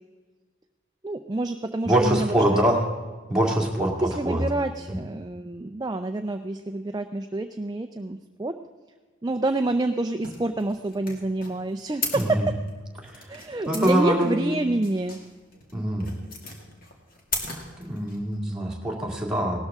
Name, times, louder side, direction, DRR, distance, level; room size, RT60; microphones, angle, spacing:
voice 1, 1.0-2.6 3.8-8.5 9.2-12.5 13.3-15.2, right 2 dB, 20° right, 6 dB, 0.4 m, -28 dB
voice 2, 1.8-2.8 3.3-4.4 12.1-12.5 13.0-13.2 13.7-14.4 15.7-16.1 17.8-19.6, right 1 dB, 5° right, -2 dB, 2.0 m, -24 dB
sound 1, 10.2-18.4, left 3 dB, 45° left, 2.2 m, -37 dB
17.5 x 13.0 x 3.6 m, 1.4 s
head